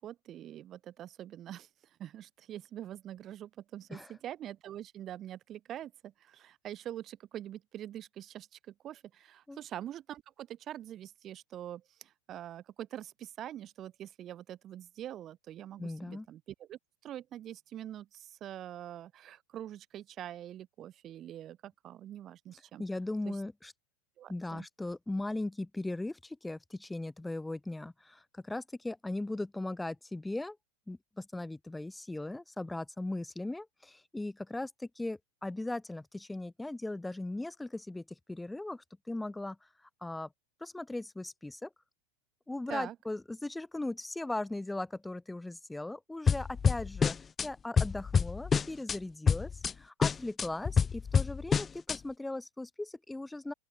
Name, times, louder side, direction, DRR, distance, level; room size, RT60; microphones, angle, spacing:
voice 1, 0.0-1.7 2.0-22.8 23.3-23.4 24.2-24.7 42.7-43.0, right 11 dB, 35° right, 6.9 m, -44 dB
voice 2, 15.8-16.3 22.8-23.7 24.3-30.6 30.9-39.6 40.0-40.3 40.6-41.7 42.5-47.2 47.4-53.5, left 2 dB, 5° left, 2.3 m, -38 dB
sound 1, 46.3-47.5 47.8-49.0 49.3-49.7 50.0-52.0, left 6 dB, 20° left, 0.6 m, -27 dB
open air
hypercardioid pair, 105°, 0 cm